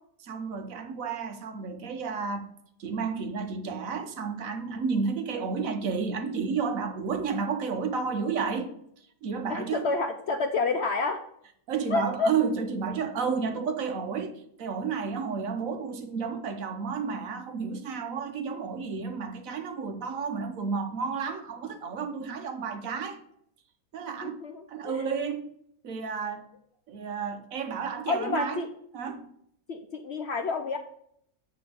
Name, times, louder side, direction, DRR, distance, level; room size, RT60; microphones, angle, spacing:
voice 1, 0.2-2.5 2.8-8.7 9.2-9.9 11.7-23.2 23.9-24.4 24.7-25.5 25.8-26.5 26.9-28.6 28.9-29.3, right 5 dB, 65° right, 1.2 m, -31 dB
voice 2, 9.5-11.2 11.9-12.3 24.2-25.1 28.1-28.7 29.7-30.8, left 3 dB, 65° left, 0.7 m, -29 dB
8.2 x 3.4 x 6.6 m
omnidirectional pair, 1.6 m